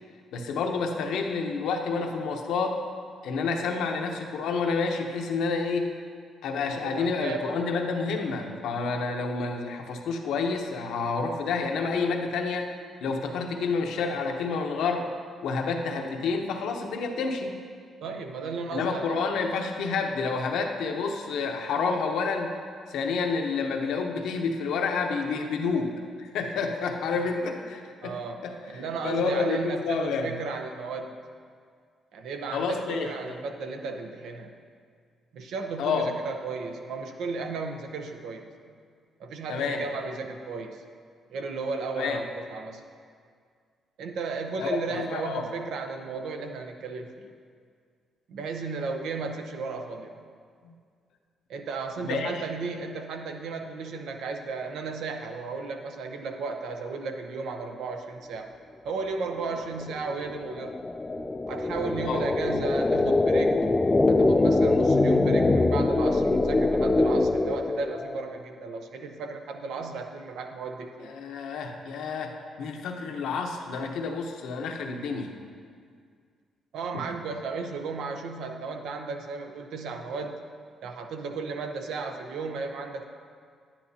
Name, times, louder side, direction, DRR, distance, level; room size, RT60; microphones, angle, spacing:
voice 1, 0.3-2.8 3.2-5.9 6.4-12.7 13.0-15.0 15.4-17.5 18.7-22.5 22.9-28.1 28.4-30.3 32.5-33.4 35.8-36.1 39.5-39.8 42.0-42.2 44.6-45.5 50.6-50.7 52.0-52.4 62.1-62.2 71.0-72.3 72.6-75.3 76.9-77.0, left 4 dB, 80° left, 3 dB, 0.9 m, -29 dB
voice 2, 6.8-7.6 9.0-9.1 15.9-16.2 18.0-19.2 28.0-28.4 28.7-31.2 32.1-34.5 35.3-38.5 39.2-40.8 41.3-42.8 44.0-47.3 48.3-50.2 51.5-58.5 58.8-60.8 61.5-63.7 64.1-71.1 76.7-80.4 80.8-83.1, right 4 dB, 80° right, 5 dB, 0.8 m, -34 dB
sound 1, 59.4-68.3, left 2 dB, 20° left, 0.3 m, -23 dB
10.5 x 10.0 x 2.8 m, 2.1 s
cardioid pair, 90°, 0 cm